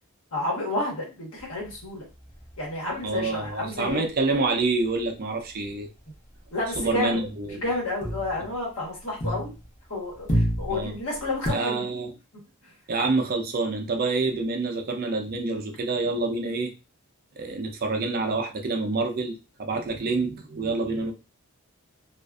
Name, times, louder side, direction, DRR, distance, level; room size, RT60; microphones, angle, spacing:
voice 1, 0.3-2.1 2.6-4.0 6.5-7.2 7.5-9.5 9.9-11.9, left 2 dB, 65° left, -2 dB, 1.2 m, -30 dB
sound 1, 1.4-5.1 5.4-5.7 6.0-9.8 10.1-11.5, right 1 dB, 35° left, 0.9 m, -32 dB
voice 2, 3.0-5.9 6.8-7.6 10.7-10.9 11.5-12.1 12.9-16.7 17.4-21.1, right 3 dB, 40° right, 4 dB, 0.4 m, -27 dB
2.4 x 2.4 x 2.3 m, 0.29 s
head